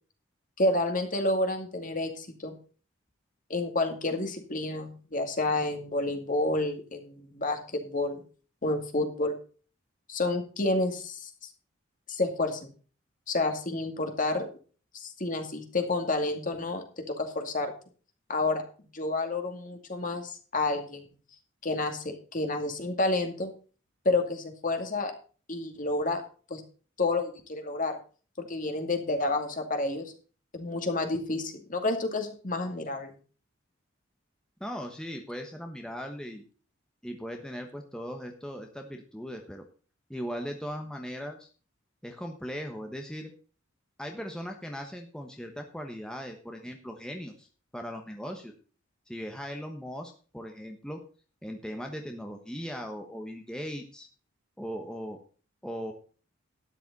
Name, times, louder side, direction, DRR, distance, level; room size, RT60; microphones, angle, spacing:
voice 1, 0.6-2.6 3.5-8.2 8.6-9.3 10.1-11.3 12.1-12.7 13.3-14.5 14.9-17.7 18.3-18.6 18.9-21.1 21.6-23.5 24.0-25.1 25.5-26.2 26.5-26.6 27.0-28.0 28.4-30.1 30.5-33.2, left 2 dB, 40° left, 5 dB, 2.4 m, -29 dB
voice 2, 34.6-36.4 37.0-39.7 40.1-41.5 42.0-43.3 44.0-47.5 47.7-48.5 49.1-51.0 51.4-54.1 54.6-55.2 55.6-55.9, equal, 5° left, 3 dB, 1.2 m, -38 dB
12.5 x 10.5 x 4.1 m, 0.38 s
head